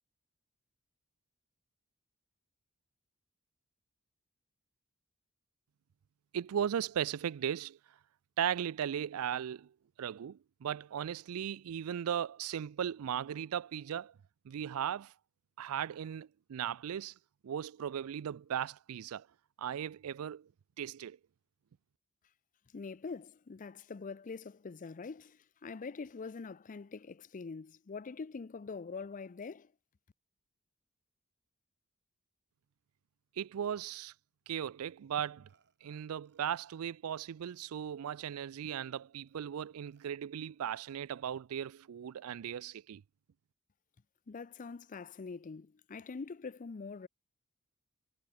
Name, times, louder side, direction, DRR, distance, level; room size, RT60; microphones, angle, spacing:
voice 1, 6.3-7.8 8.4-9.7 10.0-14.1 14.5-15.1 15.6-17.1 17.4-19.3 19.6-20.5 20.8-21.2 33.4-34.1 34.5-35.5 35.8-43.0, right 9 dB, 80° right, 0.4 m, -37 dB
voice 2, 22.7-29.7 44.3-47.1, left 4 dB, 40° left, 0.5 m, -44 dB
Burping eructation, 35.5-36.8 37.0-38.9 39.3-39.4 39.9-40.1 40.7-41.2, right 5 dB, 55° right, 3.6 m, -75 dB
head